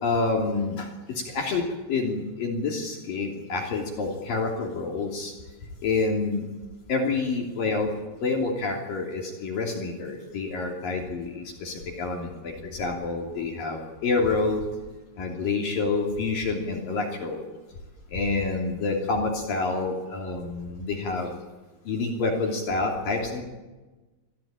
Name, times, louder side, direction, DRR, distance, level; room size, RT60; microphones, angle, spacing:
voice 1, 0.0-5.3 5.8-6.5 6.9-7.9 8.2-14.6 15.2-17.4 18.1-21.3 21.9-23.4, left 3 dB, 50° left, 1 dB, 4.4 m, -28 dB
27.0 x 16.5 x 9.0 m, 1.2 s
omnidirectional pair, 5.3 m